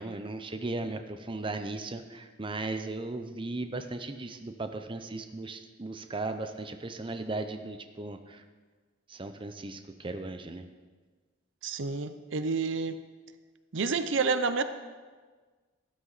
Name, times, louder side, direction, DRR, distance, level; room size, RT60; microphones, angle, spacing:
voice 1, 0.0-8.4 9.1-10.6, right 2 dB, 25° right, 7 dB, 0.7 m, -37 dB
voice 2, 11.6-13.0 13.7-14.6, right 4 dB, 70° right, 11 dB, 0.7 m, -29 dB
13.5 x 13.0 x 4.1 m, 1.4 s
head